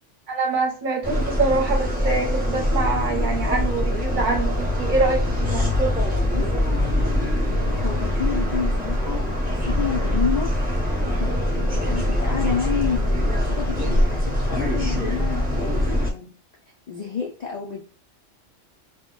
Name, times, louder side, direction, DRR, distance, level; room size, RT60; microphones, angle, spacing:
voice 1, 0.3-5.8, right 3 dB, 50° right, 1 dB, 0.7 m, -25 dB
sound 1, 1.0-16.1, left 1 dB, 10° right, 0.5 m, -23 dB
voice 2, 6.3-9.2 9.6-10.5 11.0-16.3 16.9-17.9, left 7 dB, 80° left, -1 dB, 0.3 m, -30 dB
2.2 x 2.1 x 3.7 m, 0.36 s
omnidirectional pair, 1.3 m